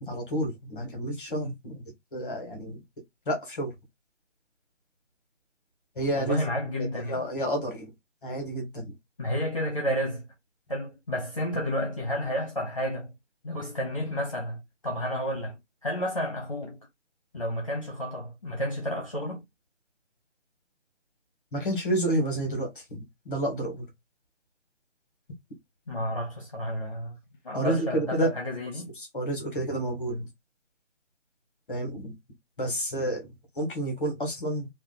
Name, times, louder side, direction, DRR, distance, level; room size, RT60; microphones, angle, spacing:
voice 1, 0.0-1.8 2.1-2.8 3.2-3.7 5.9-6.5 6.8-7.9 8.2-8.9 21.5-23.9 27.5-28.4 29.1-30.3 31.7-32.2 32.6-33.3 33.5-34.7, right 1 dB, 5° left, 1.0 m, -30 dB
voice 2, 6.2-7.3 9.2-10.3 10.7-13.1 13.4-16.8 17.3-19.4 25.9-27.2 27.4-28.9, equal, 30° left, 0.7 m, -31 dB
2.8 x 2.4 x 3.9 m
figure-of-eight pair, 160°, 37 cm